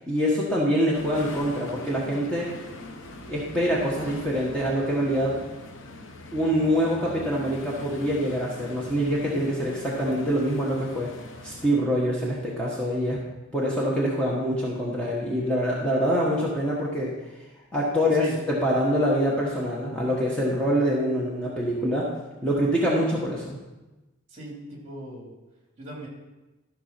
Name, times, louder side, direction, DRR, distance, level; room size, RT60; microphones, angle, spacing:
voice 1, 0.1-2.5 3.2-5.4 6.3-11.1 11.4-13.2 13.5-17.1 17.7-22.1 22.4-23.6, equal, 5° left, -5 dB, 1.3 m, -25 dB
sound 1, 0.9-11.7, left 2 dB, 70° left, 1.0 m, -42 dB
voice 2, 24.3-25.3 25.8-26.1, right 1 dB, 35° right, -2 dB, 3.0 m, -39 dB
13.5 x 4.8 x 5.8 m, 1.1 s
head